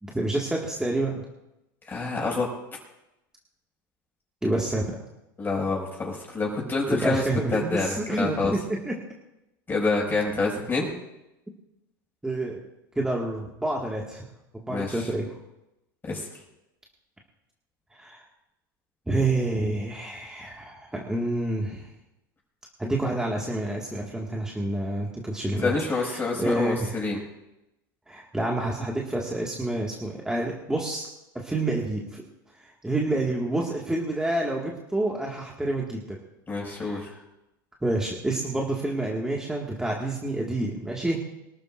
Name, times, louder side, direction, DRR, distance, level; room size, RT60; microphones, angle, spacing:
voice 1, 0.0-1.1 4.4-4.8 6.9-9.0 12.2-12.6 13.0-14.3 14.5-15.4 18.0-18.2 19.1-21.9 22.8-27.2 28.1-31.1 31.3-32.2 32.6-36.2 36.6-37.2 37.8-41.2, right 2 dB, 5° right, -2 dB, 1.9 m, -28 dB
voice 2, 1.9-2.5 5.4-7.2 7.5-8.5 9.7-10.9 14.7-15.0 16.0-16.3 25.6-27.2 36.5-37.0, left 3 dB, 15° left, -2 dB, 5.9 m, -27 dB
25.0 x 13.0 x 2.6 m, 0.92 s
supercardioid pair, 120°, 11 cm